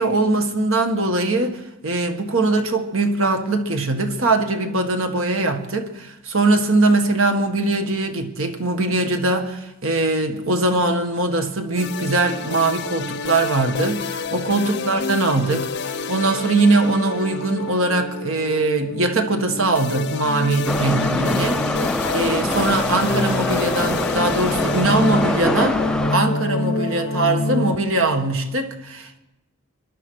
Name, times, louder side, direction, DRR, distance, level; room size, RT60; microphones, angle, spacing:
voice 1, 0.0-29.2, right 2 dB, 70° right, 1.7 m, -21 dB
sound 1, 11.8-27.8, left 3 dB, 55° left, 0.7 m, -27 dB
Subway metro underground, 20.7-26.2, left 1 dB, 5° left, 0.4 m, -24 dB
22.0 x 12.0 x 4.7 m
head